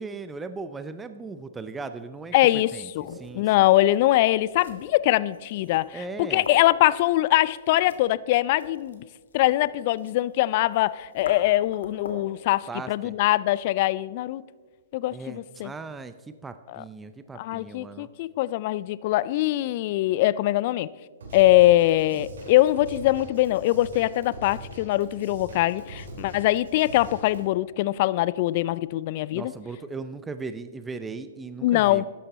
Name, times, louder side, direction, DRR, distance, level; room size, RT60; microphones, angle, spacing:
voice 1, 0.0-2.3 2.7-2.9 3.2-3.7 5.9-6.4 12.7-13.2 15.1-16.1 16.4-18.1 29.3-32.0, right 4 dB, 10° right, 0.6 m, -37 dB
sound 1, 2.2-12.4, left 2 dB, 70° left, 1.9 m, -46 dB
voice 2, 2.3-9.0 9.3-14.4 14.9-15.7 16.7-16.8 17.4-20.9 21.3-29.5 31.6-32.0, left 16 dB, 45° left, 0.3 m, -22 dB
Drum kit / Drum, 21.2-27.4, right 1 dB, 75° right, 3.4 m, -42 dB
13.5 x 11.0 x 4.2 m
hypercardioid pair, 120°, 0 cm